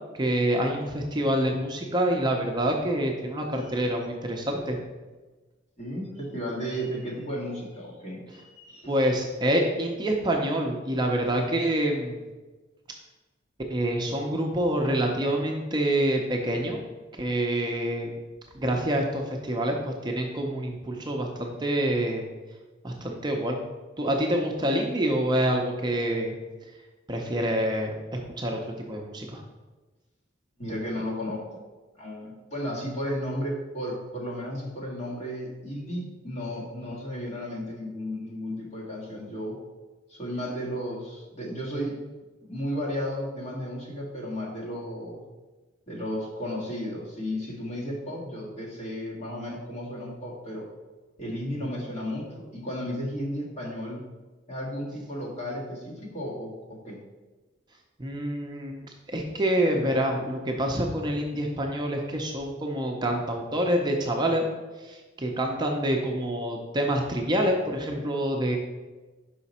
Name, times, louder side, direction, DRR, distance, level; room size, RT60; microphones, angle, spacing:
voice 1, 0.1-4.8 8.9-12.2 13.7-16.8 17.1-18.1 18.5-22.2 22.8-23.6 24.0-26.4 27.1-29.4 58.0-58.8 59.1-64.4 64.8-68.6, right 1 dB, 25° right, 1 dB, 0.6 m, -27 dB
voice 2, 5.8-8.9 30.6-31.6 32.0-39.6 40.1-42.0 42.4-45.2 45.9-50.7 51.2-54.0 54.5-57.0, equal, 40° left, -4 dB, 1.7 m, -34 dB
5.7 x 5.0 x 4.2 m, 1.2 s
head